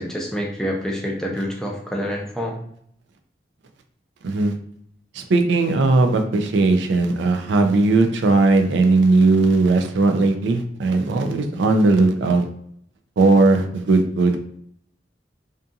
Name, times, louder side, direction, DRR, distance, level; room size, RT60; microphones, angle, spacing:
voice 1, 0.0-2.6, equal, 5° left, -2 dB, 0.4 m, -27 dB
voice 2, 4.2-4.5 5.1-12.4 13.2-14.4, right 3 dB, 80° right, 6 dB, 0.4 m, -18 dB
2.6 x 2.6 x 2.3 m, 0.68 s
head